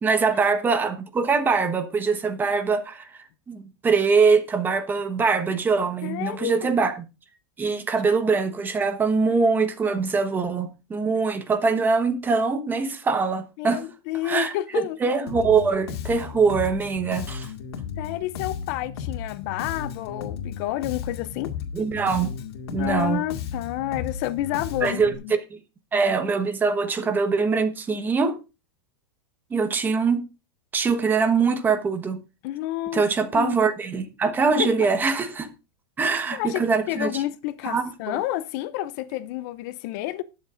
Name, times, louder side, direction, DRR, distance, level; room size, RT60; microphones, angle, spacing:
voice 1, 0.0-6.9 7.6-13.8 14.2-17.5 21.7-22.3 22.7-23.2 24.8-25.1 25.9-28.3 29.5-30.2 30.7-32.2 32.9-35.5 36.0-37.2 37.6-38.2, right 4 dB, 15° right, 1.2 m, -23 dB
voice 2, 6.0-6.7 13.6-15.0 18.0-21.5 22.8-25.3 27.0-27.1 32.4-33.0 33.3-33.6 34.6-34.9 36.3-40.2, left 15 dB, 45° left, 0.5 m, -30 dB
Bass guitar, 15.3-25.2, left 7 dB, 75° left, 2.1 m, -35 dB
20.0 x 7.3 x 2.5 m
supercardioid pair, 145°, 13 cm